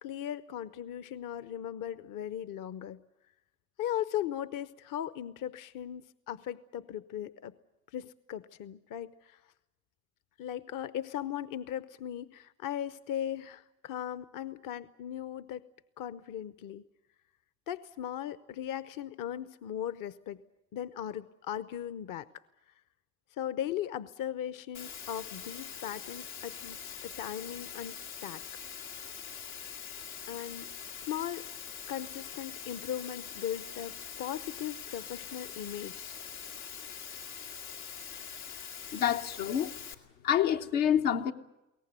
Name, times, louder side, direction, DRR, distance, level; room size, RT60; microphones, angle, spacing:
voice 1, 0.0-3.0 3.8-7.5 7.9-9.4 10.4-15.6 16.0-16.8 17.7-20.4 20.7-22.3 23.4-28.4 30.3-30.7 31.1-31.4 31.9-36.2, left 10 dB, 50° left, 0.8 m, -38 dB
Water, 24.7-39.9, left 7 dB, 90° left, 1.9 m, -43 dB
voice 2, 38.9-39.7 40.2-41.3, left 9 dB, 75° left, 1.2 m, -27 dB
22.0 x 18.0 x 9.5 m
hypercardioid pair, 65°, 42 cm